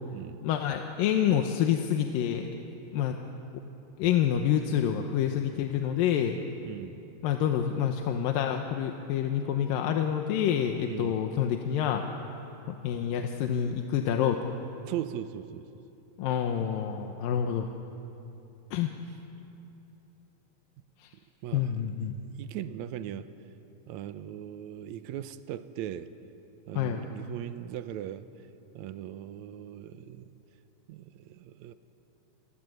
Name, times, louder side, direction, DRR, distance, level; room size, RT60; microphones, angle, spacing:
voice 1, 0.4-2.5 2.9-3.2 4.0-6.3 7.2-12.0 12.7-14.5 16.2-17.7 18.7-18.9 21.0-21.1 21.5-22.2 26.8-27.0, left 9 dB, 75° left, 4 dB, 2.7 m, -27 dB
voice 2, 6.6-7.0 10.9-11.2 14.9-15.6 21.4-21.7 22.4-23.3 23.9-26.1 26.7-28.3 28.8-30.3 30.9-31.7, right 11 dB, 75° right, 11 dB, 1.7 m, -39 dB
29.0 x 23.0 x 7.9 m, 2.9 s
omnidirectional pair, 4.2 m